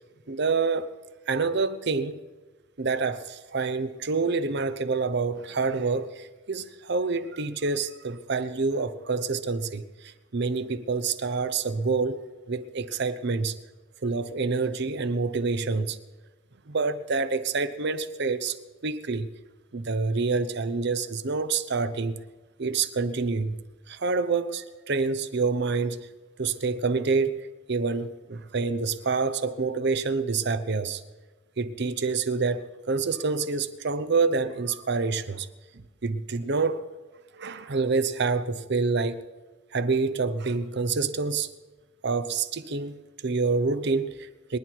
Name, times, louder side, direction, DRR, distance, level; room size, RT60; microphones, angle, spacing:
voice 1, 0.3-0.9 1.3-2.2 2.8-12.2 12.5-13.6 14.0-16.0 16.7-19.3 19.7-22.2 22.6-23.6 23.9-26.1 26.4-31.0 31.6-35.5 35.7-36.8 37.3-39.2 39.7-41.5 42.0-44.6, right 4 dB, 60° right, 0.8 m, -27 dB
23.0 x 10.5 x 4.7 m
head